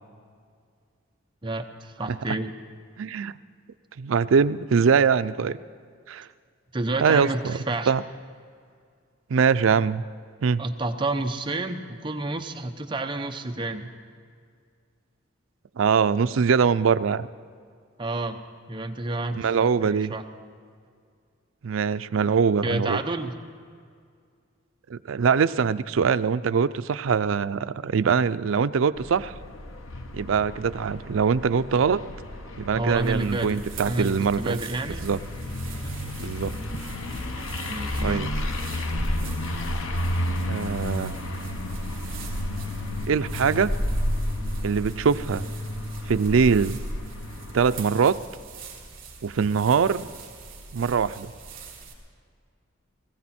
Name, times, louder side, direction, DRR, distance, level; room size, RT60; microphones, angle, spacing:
voice 1, 1.4-2.5 6.7-7.9 10.6-13.9 18.0-18.4 18.7-19.5 19.8-20.2 22.6-23.4 32.8-35.0 37.7-38.3, right 2 dB, 25° right, 5 dB, 0.8 m, -30 dB
voice 2, 3.0-3.3 4.0-5.6 6.1-6.3 7.0-7.6 7.9-8.0 9.3-10.0 10.4-10.6 15.8-17.3 19.3-20.1 21.6-23.0 24.9-29.4 30.1-32.0 32.6-34.6 35.0-35.2 36.2-36.5 38.0-38.3 40.5-41.1 43.1-43.7 44.6-45.4 46.1-46.8 47.5-48.2 49.2-50.1 50.7-51.3, right 6 dB, 85° right, 13 dB, 0.4 m, -22 dB
sound 1, 29.0-47.9, left 1 dB, 90° left, 1.1 m, -33 dB
sound 2, 32.9-51.9, right 1 dB, 45° right, 3.2 m, -35 dB
19.5 x 15.5 x 4.3 m, 2.2 s
head